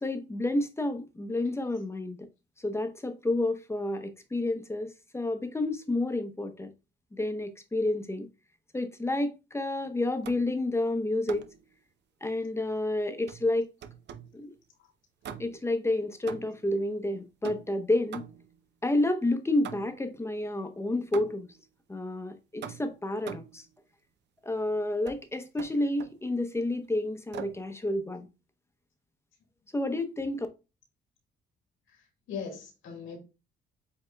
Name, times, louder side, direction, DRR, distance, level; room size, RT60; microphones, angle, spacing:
voice 1, 0.0-2.2 2.6-6.7 7.1-8.3 8.7-11.5 12.2-13.7 14.3-14.6 15.4-18.2 18.8-21.5 21.9-23.6 24.4-28.3 29.7-30.5, left 2 dB, 15° left, 0.7 m, -30 dB
sound 1, 10.2-10.6 11.3-11.6 13.3-14.4 15.2-15.7 16.3-16.7 17.4-18.6 19.6-20.1 21.1-21.6 22.6-23.6 25.1-25.2 25.6-26.2 27.3-27.7, right 8 dB, 60° right, 0.5 m, -43 dB
voice 2, 31.9-33.2, left 6 dB, 90° left, 1.9 m, -41 dB
7.5 x 2.8 x 2.2 m
cardioid pair, 90°, 20 cm